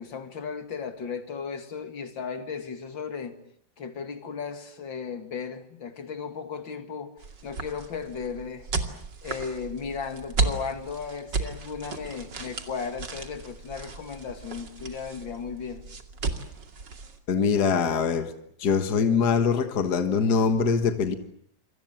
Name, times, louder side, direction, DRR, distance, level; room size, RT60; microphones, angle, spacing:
voice 1, 0.0-3.4 3.8-8.7 9.2-15.8, left 5 dB, 85° left, 3.0 m, -35 dB
sound 1, 7.2-17.2, right 4 dB, 70° right, 3.2 m, -34 dB
voice 2, 17.3-18.3 18.6-21.2, left 5 dB, 60° left, 2.1 m, -23 dB
28.0 x 25.5 x 7.3 m
omnidirectional pair, 2.0 m